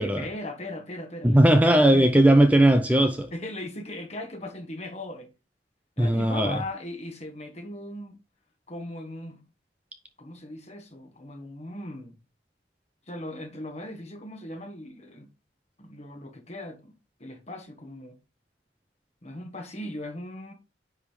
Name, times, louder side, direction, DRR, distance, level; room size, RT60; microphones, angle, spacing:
voice 1, 0.0-2.2 3.3-5.3 6.0-8.2 8.7-9.4 10.2-12.2 13.1-15.3 15.8-16.9 17.2-18.2 19.2-20.5, left 1 dB, 35° left, 1.6 m, -38 dB
voice 2, 1.2-3.3 6.0-6.6, right 1 dB, 10° right, 0.5 m, -18 dB
10.0 x 3.6 x 4.7 m
head